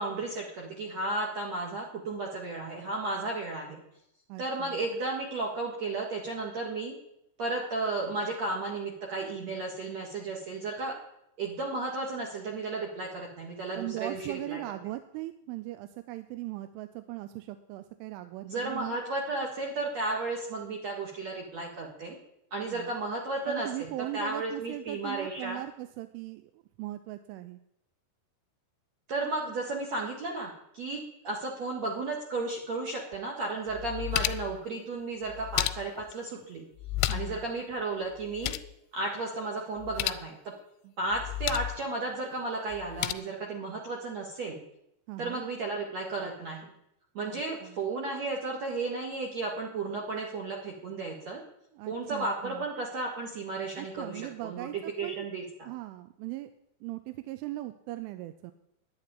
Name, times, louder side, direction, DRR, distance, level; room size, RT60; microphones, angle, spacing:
voice 1, 0.0-3.8 4.4-6.9 7.4-10.9 11.4-14.6 18.4-22.2 22.5-25.6 29.1-36.6 37.1-38.5 38.9-40.4 41.0-44.6 45.2-46.6 47.1-51.4 51.9-54.7 55.0-55.7, right 3 dB, 60° right, 0 dB, 1.9 m, -34 dB
voice 2, 4.3-4.8 13.8-19.0 22.7-22.9 23.5-27.6 37.1-37.4 40.8-40.9 45.1-45.4 47.2-47.8 51.7-52.6 53.8-55.3 55.6-56.5 56.8-58.5, right 16 dB, 85° right, 10 dB, 3.1 m, -39 dB
sound 1, 33.1-33.2 33.7-34.6 35.3-36.1 36.8-37.4 37.7-37.8 38.1-38.7 39.8-40.3 41.1-41.8 42.7-43.1, left 16 dB, 90° left, 3.3 m, -32 dB
10.5 x 9.9 x 9.9 m, 0.79 s
omnidirectional pair, 5.7 m